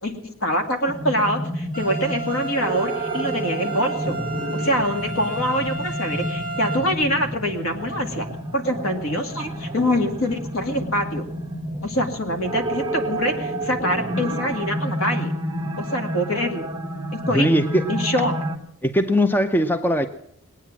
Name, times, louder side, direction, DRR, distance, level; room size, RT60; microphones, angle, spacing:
voice 1, 0.0-4.2 4.5-8.3 8.5-11.3 11.8-15.3 15.8-16.7 17.1-17.5 17.9-18.4, equal, 65° left, 5 dB, 2.2 m, -24 dB
sound 1, 0.9-18.6, right 1 dB, 15° right, 1.2 m, -30 dB
sound 2, 1.7-6.8, right 3 dB, 40° left, 4.9 m, -32 dB
voice 2, 17.3-17.9 18.8-20.1, equal, 10° left, 10 dB, 0.5 m, -20 dB
20.0 x 9.2 x 7.3 m, 0.71 s
head